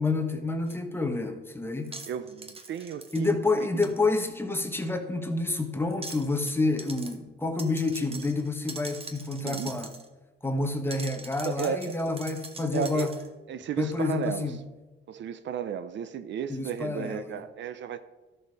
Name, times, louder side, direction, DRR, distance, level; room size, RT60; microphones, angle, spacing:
voice 1, 0.0-2.0 3.1-10.0 10.4-13.1 13.8-14.6 16.5-17.4, left 3 dB, 10° left, 5 dB, 1.4 m, -29 dB
sound 1, 0.7-0.8 1.8-3.2 3.8-3.9 5.9-6.5 6.8-7.1 7.6-10.1 10.9-13.3, right 3 dB, 30° right, 1.4 m, -42 dB
voice 2, 2.1-3.4 9.4-9.8 11.4-11.9 12.7-13.1 13.5-14.5 15.1-18.0, right 8 dB, 65° right, 12 dB, 0.7 m, -33 dB
12.5 x 6.6 x 4.9 m, 1.2 s
cardioid pair, 90°, 20 cm